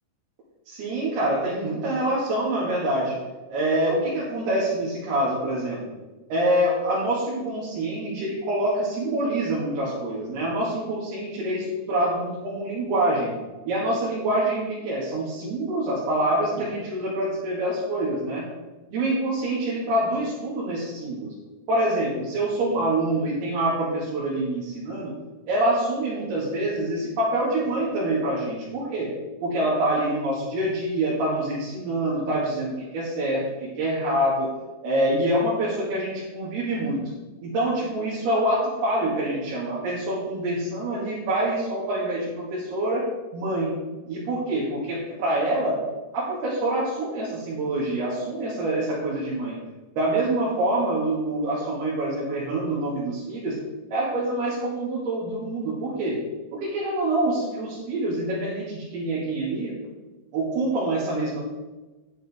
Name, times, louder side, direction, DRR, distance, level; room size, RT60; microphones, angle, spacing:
voice 1, 0.7-3.2 3.5-5.8 6.3-13.3 13.7-18.5 18.9-21.3 21.7-25.1 25.5-29.1 29.4-34.5 34.8-37.1 37.4-43.0 43.3-43.8 44.1-45.8 46.1-49.6 50.0-53.6 53.9-56.2 56.5-59.8 60.3-61.4, right 1 dB, 75° right, -7 dB, 4.3 m, -26 dB
10.5 x 10.5 x 3.6 m, 1.2 s
omnidirectional pair, 4.6 m